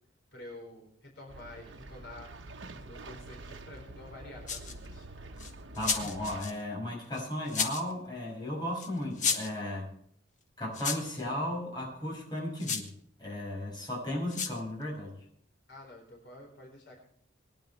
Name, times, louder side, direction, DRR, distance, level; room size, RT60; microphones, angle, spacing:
voice 1, 0.3-5.2 15.7-17.0, left 2 dB, 65° left, 0 dB, 4.5 m, -49 dB
sound 1, 1.3-6.4, right 2 dB, 80° right, 1.1 m, -46 dB
sound 2, 4.5-4.9 5.4-6.5 7.1-7.9 8.8-8.9 9.2-9.5 10.7-11.2 12.6-12.9 14.3-14.6, left 6 dB, 40° left, 1.4 m, -32 dB
voice 2, 5.8-9.9 10.6-12.9 13.2-15.3, left 1 dB, 25° left, -2 dB, 5.9 m, -35 dB
22.5 x 10.5 x 3.3 m, 0.65 s
head